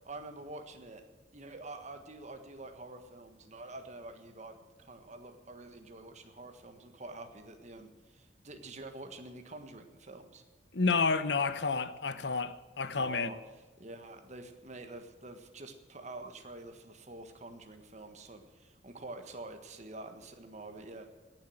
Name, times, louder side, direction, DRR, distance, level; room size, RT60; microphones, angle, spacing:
voice 1, 0.0-1.0 1.3-10.4 12.9-13.4 13.8-21.1, right 2 dB, 40° right, 1.5 m, -47 dB
voice 2, 10.7-13.3, left 4 dB, 80° left, 0.9 m, -30 dB
17.5 x 7.6 x 7.8 m
head